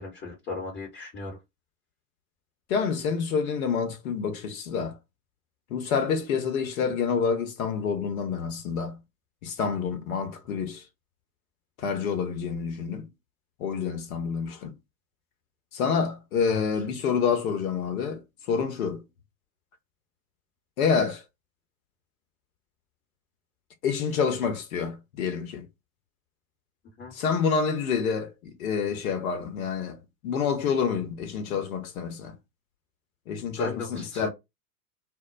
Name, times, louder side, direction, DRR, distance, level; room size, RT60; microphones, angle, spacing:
voice 1, 0.0-1.4 16.5-16.7 27.0-27.1 33.6-34.3, left 3 dB, 20° left, 1.0 m, -36 dB
voice 2, 2.7-5.0 5.7-9.0 9.4-10.8 11.8-13.0 13.6-14.7 15.7-18.2 18.5-19.0 20.8-21.2 23.8-25.6 27.1-30.0 30.2-32.3 33.3-34.3, left 6 dB, 60° left, 0.9 m, -28 dB
2.1 x 2.0 x 3.8 m
figure-of-eight pair, 90°, 48 cm